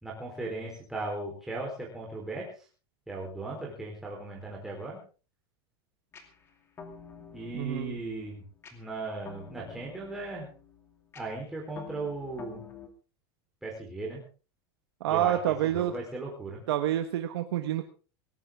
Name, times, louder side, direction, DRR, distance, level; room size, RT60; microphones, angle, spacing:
voice 1, 0.0-2.4 3.1-5.0 7.3-8.4 8.7-10.5 11.2-12.6 13.6-14.2 15.1-15.4 15.6-16.6, right 2 dB, 5° right, -3 dB, 4.0 m, -37 dB
sound 1, 6.1-12.9, left 6 dB, 20° left, 2.5 m, -49 dB
voice 2, 7.5-8.0 15.0-16.0 16.7-17.9, right 12 dB, 85° right, 7 dB, 1.4 m, -28 dB
18.5 x 15.5 x 3.7 m, 0.36 s
supercardioid pair, 160°, 13 cm